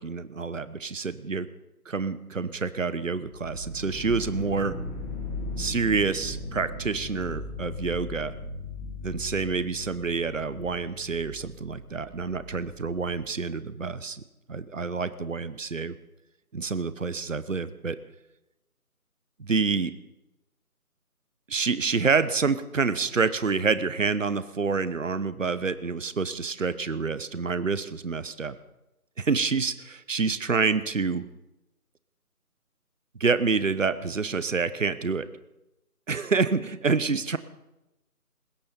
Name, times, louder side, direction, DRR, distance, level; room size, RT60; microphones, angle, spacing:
voice 1, 0.0-1.5 1.9-4.8 5.6-8.3 9.0-14.2 14.5-15.9 16.5-18.0 19.4-19.9 21.5-28.6 29.2-31.2 33.2-35.3 36.1-37.4, right 4 dB, 55° right, 14 dB, 1.0 m, -27 dB
sound 1, 3.3-13.2, left 2 dB, 15° left, 2.8 m, -38 dB
20.5 x 16.5 x 4.4 m, 0.92 s
figure-of-eight pair, 160°, 45 cm